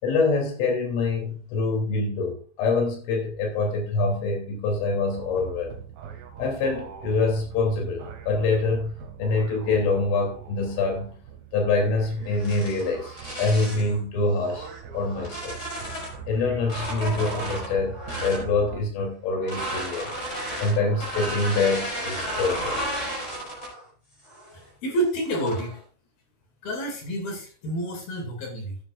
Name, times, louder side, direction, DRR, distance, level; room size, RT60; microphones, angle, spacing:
voice 1, 0.0-5.8 6.4-8.9 9.2-11.1 11.5-15.6 16.3-20.1 20.6-22.8, left 3 dB, 80° left, 1 dB, 5.5 m, -25 dB
sound 1, 5.1-18.8, right 7 dB, 65° right, 3.7 m, -41 dB
sound 2, 12.3-13.9 14.6-16.2 16.6-18.5 19.4-23.8 24.2-24.6 25.2-25.7, right 1 dB, 15° left, 5.0 m, -33 dB
voice 2, 24.5-25.8 26.6-28.8, right 1 dB, 55° left, 1 dB, 3.9 m, -29 dB
14.0 x 9.9 x 2.5 m, 0.42 s
omnidirectional pair, 5.6 m